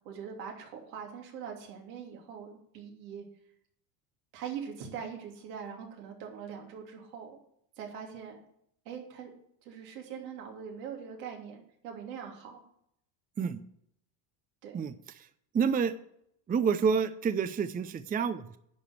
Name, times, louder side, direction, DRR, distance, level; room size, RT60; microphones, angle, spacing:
voice 1, 0.0-3.2 4.3-7.4 7.8-8.4 8.8-9.3 9.6-12.6 14.6-14.8, right 7 dB, 85° right, 0 dB, 3.0 m, -42 dB
voice 2, 14.7-15.3 15.5-15.9 16.5-18.6, right 6 dB, 20° right, 12 dB, 0.5 m, -29 dB
10.5 x 5.0 x 7.7 m, 0.71 s
supercardioid pair, 100°, 48 cm